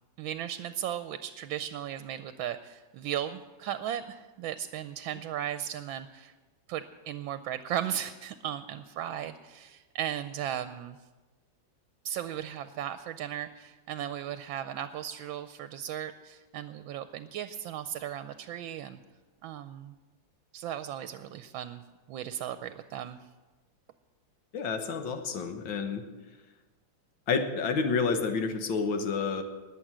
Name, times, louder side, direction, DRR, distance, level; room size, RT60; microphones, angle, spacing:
voice 1, 0.2-6.3 6.7-11.0 12.0-19.0 19.4-19.9 20.5-21.8 22.1-23.2, right 10 dB, 85° right, 11 dB, 1.4 m, -36 dB
voice 2, 24.5-26.0 27.3-29.4, left 5 dB, 80° left, 7 dB, 1.9 m, -29 dB
20.0 x 7.9 x 6.1 m, 1.2 s
omnidirectional pair, 2.1 m